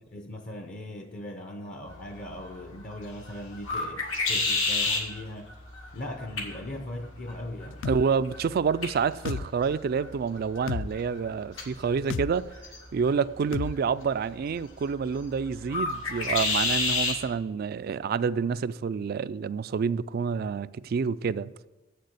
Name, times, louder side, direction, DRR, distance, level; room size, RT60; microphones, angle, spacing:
voice 1, 0.1-5.5 5.9-7.9, left 1 dB, 40° left, 0.7 m, -39 dB
Red Wing Blackbird call, 1.9-17.2, left 3 dB, 85° left, 2.2 m, -33 dB
sound 1, 7.8-8.0 9.3-9.5 10.7-10.9 12.1-12.3 13.5-13.7, left 5 dB, 70° left, 0.4 m, -30 dB
voice 2, 7.8-12.5 12.9-21.7, right 6 dB, 50° right, 0.3 m, -28 dB
7.6 x 6.7 x 7.9 m
head